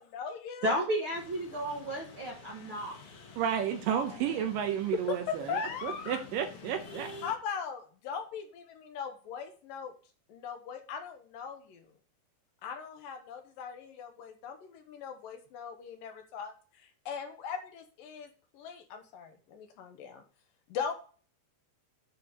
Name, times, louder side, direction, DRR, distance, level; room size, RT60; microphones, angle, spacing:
voice 1, 0.0-0.8 3.9-4.0 4.9-5.0 5.3-6.2 7.2-9.9 10.3-11.9 12.6-20.2 20.7-20.9, left 6 dB, 70° left, 5 dB, 2.5 m, -39 dB
voice 2, 0.6-2.9, equal, 55° right, -1 dB, 1.5 m, -32 dB
sound 1, 1.1-7.3, left 3 dB, 55° left, 1.6 m, -49 dB
voice 3, 3.4-7.1, right 9 dB, 75° right, 6 dB, 2.2 m, -32 dB
9.4 x 4.5 x 5.2 m, 0.39 s
omnidirectional pair, 4.4 m